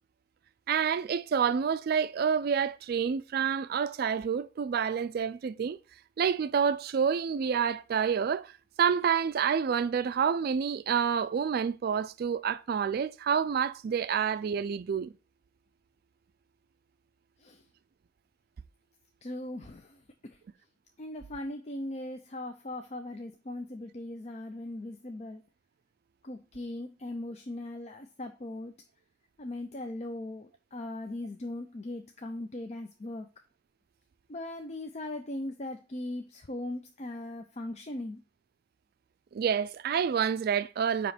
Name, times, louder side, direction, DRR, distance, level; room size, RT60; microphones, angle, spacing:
voice 1, 0.7-5.8 6.2-8.5 8.8-15.1 39.3-41.1, right 7 dB, 55° right, 0.3 m, -28 dB
voice 2, 19.2-20.4 21.0-25.4 26.2-28.8 29.4-33.3 34.3-38.2, left 1 dB, 35° left, 0.5 m, -39 dB
9.0 x 3.0 x 5.0 m
head